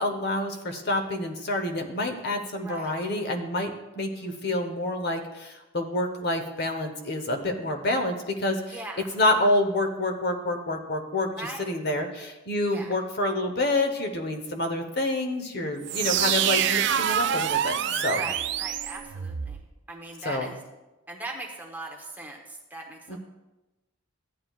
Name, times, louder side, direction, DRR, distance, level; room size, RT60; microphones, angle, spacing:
voice 1, 0.0-3.7 4.0-8.8 9.1-17.8 18.0-18.3 20.2-20.5 23.1-23.2, left 1 dB, 50° left, 5 dB, 0.9 m, -28 dB
voice 2, 2.6-2.9 4.0-4.4 8.7-9.1 11.4-11.7 12.7-12.9 18.1-19.6 19.9-20.6 21.1-23.2, right 2 dB, 10° right, 0 dB, 1.0 m, -40 dB
sound 1, 15.8-19.6, right 9 dB, 55° right, 0.3 m, -26 dB
14.5 x 9.1 x 2.4 m, 1.0 s
head